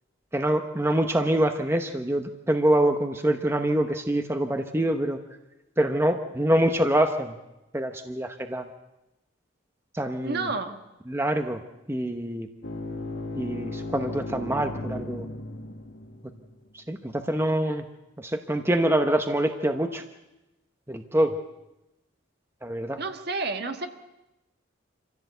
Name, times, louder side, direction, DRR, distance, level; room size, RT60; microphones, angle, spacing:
voice 1, 0.3-5.2 5.8-7.3 7.7-8.6 9.9-10.5 11.1-11.6 11.9-12.5 13.4-15.2 16.9-17.8 18.2-20.0 20.9-21.3 22.6-23.0, right 1 dB, 10° right, 6 dB, 0.9 m, -25 dB
voice 2, 10.2-10.8 23.0-23.9, right 3 dB, 55° right, 6 dB, 1.7 m, -30 dB
sound 1, 12.6-16.6, left 2 dB, 60° left, 1.7 m, -36 dB
26.0 x 15.5 x 8.1 m, 0.96 s
head